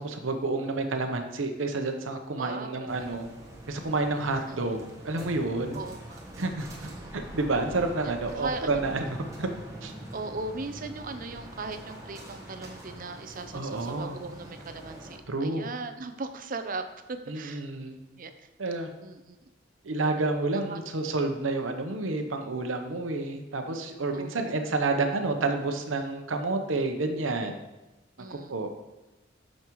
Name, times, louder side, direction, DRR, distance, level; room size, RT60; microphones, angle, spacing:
voice 1, 0.0-3.3 3.7-5.8 6.4-6.7 7.1-9.5 9.8-9.9 13.5-14.2 15.3-15.7 17.3-18.0 18.6-18.9 19.8-27.6 28.3-28.7, right 3 dB, 90° right, 5 dB, 0.8 m, -29 dB
voice 2, 2.4-3.2 4.4-4.6 5.7-6.2 6.8-7.1 8.3-8.8 10.1-17.6 18.2-18.3 19.0-19.4 20.5-20.8 24.1-24.5 28.2-28.5, right 3 dB, 45° right, 9 dB, 0.6 m, -38 dB
sound 1, 2.9-15.2, right 1 dB, 15° right, 1.2 m, -44 dB
9.1 x 6.4 x 3.1 m, 1.0 s
head